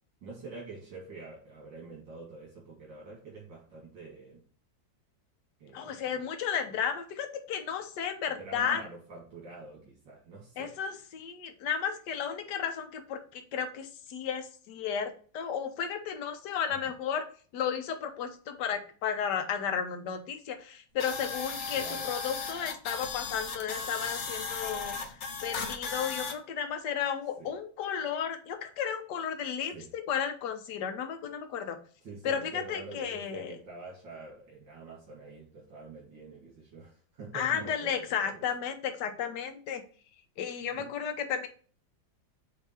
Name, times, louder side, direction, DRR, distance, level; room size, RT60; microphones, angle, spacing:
voice 1, 0.2-4.4 5.6-6.2 8.4-10.8 21.7-22.1 27.4-27.5 29.7-29.9 32.0-38.4 40.7-40.9, right 3 dB, 85° right, -3 dB, 2.6 m, -46 dB
voice 2, 5.7-8.8 10.6-17.2 17.5-24.9 25.4-31.8 32.2-33.5 37.3-39.8 40.4-41.5, left 7 dB, 70° left, 6 dB, 1.5 m, -33 dB
sound 1, 21.0-26.3, left 5 dB, 50° left, 1.0 m, -36 dB
8.0 x 2.9 x 4.3 m, 0.42 s
omnidirectional pair, 2.0 m